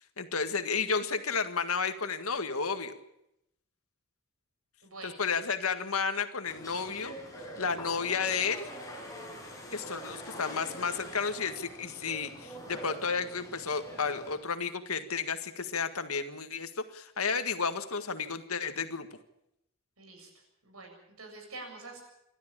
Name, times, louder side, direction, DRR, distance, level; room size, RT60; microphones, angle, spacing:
voice 1, 0.0-2.9 5.0-7.1 7.6-8.7 9.7-19.1, left 5 dB, 85° left, 8 dB, 1.8 m, -32 dB
voice 2, 4.8-5.1 20.0-20.3 20.6-22.0, right 3 dB, 85° right, 2 dB, 7.6 m, -46 dB
sound 1, 6.4-14.4, equal, 15° left, 6.6 m, -44 dB
27.5 x 12.5 x 8.8 m, 0.82 s
head